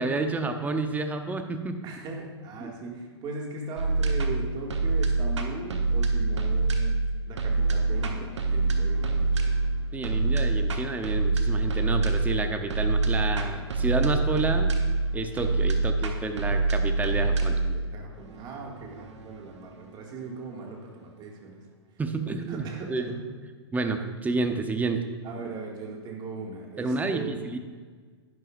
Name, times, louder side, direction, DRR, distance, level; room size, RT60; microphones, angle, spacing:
voice 1, 0.0-1.8 2.6-2.7 9.9-14.7 15.1-17.6 22.0-23.1 23.7-25.0 26.8-27.6, right 3 dB, 10° right, 6 dB, 0.8 m, -30 dB
voice 2, 1.8-7.0 7.3-9.7 17.6-21.6 22.5-23.2 25.2-27.5, right 3 dB, 30° right, -1 dB, 2.1 m, -39 dB
sound 1, 3.8-20.9, right 3 dB, 80° right, 1.1 m, -26 dB
11.0 x 10.5 x 2.6 m, 1.5 s
hypercardioid pair, 115°, 15 cm